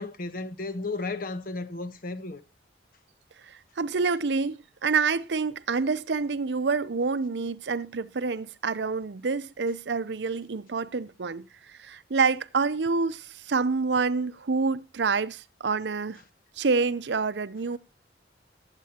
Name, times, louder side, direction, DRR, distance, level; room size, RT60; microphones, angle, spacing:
voice 1, 0.0-2.4, left 3 dB, 50° left, 0.9 m, -34 dB
voice 2, 3.4-16.2 16.6-17.8, right 4 dB, 70° right, 0.6 m, -27 dB
20.5 x 8.3 x 2.8 m
head